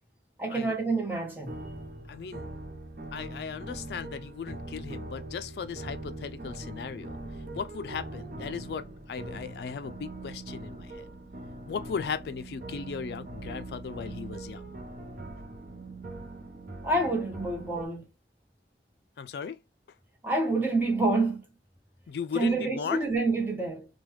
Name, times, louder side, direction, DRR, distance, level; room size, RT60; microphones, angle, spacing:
voice 1, 0.4-1.6 16.8-18.1 20.2-21.4 22.3-23.9, right 2 dB, 10° right, 0.9 m, -27 dB
sound 1, 1.5-17.9, right 2 dB, 50° right, 0.6 m, -41 dB
voice 2, 2.1-2.5 3.1-7.2 7.5-11.1 11.7-14.7 19.2-19.6 22.1-23.0, left 6 dB, 70° left, 0.3 m, -37 dB
3.2 x 2.2 x 3.0 m
head